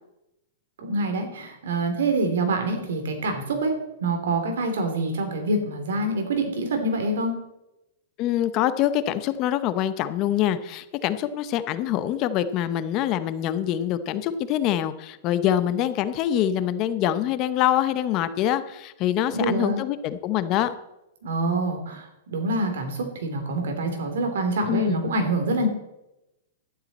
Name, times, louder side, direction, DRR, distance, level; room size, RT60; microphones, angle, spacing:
voice 1, 0.8-3.7 4.0-7.3 19.3-19.8 21.2-25.7, right 2 dB, 80° right, 5 dB, 3.1 m, -26 dB
voice 2, 8.2-20.7 24.7-25.0, left 11 dB, 35° left, 12 dB, 0.8 m, -25 dB
12.0 x 11.0 x 4.2 m, 0.89 s
hypercardioid pair, 145°, 0 cm